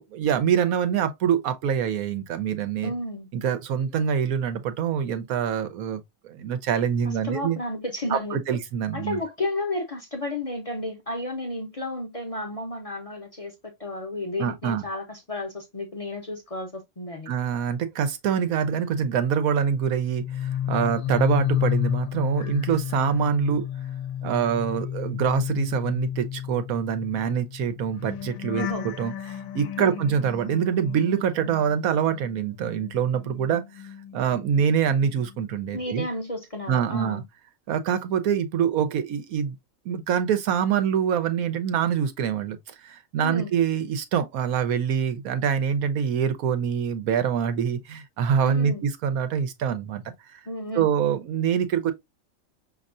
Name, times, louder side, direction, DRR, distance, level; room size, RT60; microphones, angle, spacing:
voice 1, 0.0-2.9 3.3-7.6 8.1-9.2 14.4-14.8 17.3-23.7 24.2-33.7 34.1-36.0 36.7-37.2 37.7-39.5 39.8-50.1 50.7-51.9, right 8 dB, 90° right, 1.2 m, -25 dB
voice 2, 2.8-3.3 7.0-8.6 8.9-17.3 28.6-28.9 29.8-30.0 35.7-37.2 43.2-43.5 48.4-48.8 50.5-50.9, left 1 dB, 35° left, 0.6 m, -32 dB
sound 1, 20.0-32.3 32.6-34.7 35.0-35.4, left 10 dB, 75° left, 1.1 m, -32 dB
5.3 x 2.9 x 2.4 m
omnidirectional pair, 1.4 m